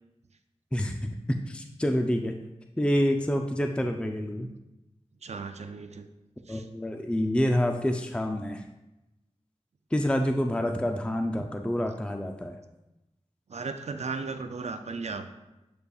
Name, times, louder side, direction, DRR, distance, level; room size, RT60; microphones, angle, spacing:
voice 1, 0.7-1.1 1.5-2.3 2.8-4.5 6.5-8.6 9.9-12.6, equal, 10° left, 4 dB, 0.4 m, -27 dB
voice 2, 5.2-6.1 6.5-6.7 11.4-11.5 13.5-15.3, right 4 dB, 70° right, 8 dB, 0.5 m, -36 dB
8.1 x 5.2 x 2.3 m, 0.97 s
wide cardioid pair, 60°, 12 cm